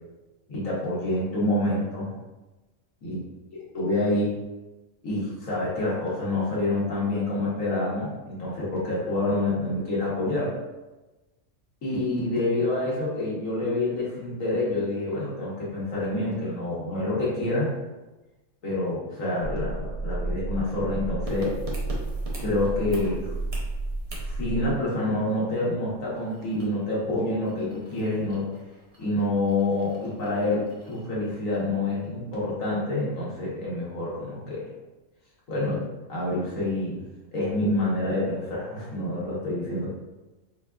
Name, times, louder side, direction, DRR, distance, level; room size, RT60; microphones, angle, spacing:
voice 1, 0.5-2.1 3.0-3.2 3.5-4.4 5.0-10.6 11.8-17.7 18.6-21.6 22.4-23.3 24.2-28.5 29.0-34.7 35.5-37.0 37.3-40.0, left 2 dB, 75° left, -6 dB, 1.4 m, -27 dB
sound 1, 19.4-24.7, right 2 dB, 80° right, 1.0 m, -31 dB
sound 2, 21.3-31.7 32.0-32.1, right 2 dB, 45° right, 0.4 m, -45 dB
4.6 x 2.3 x 2.3 m, 1.1 s
omnidirectional pair, 1.4 m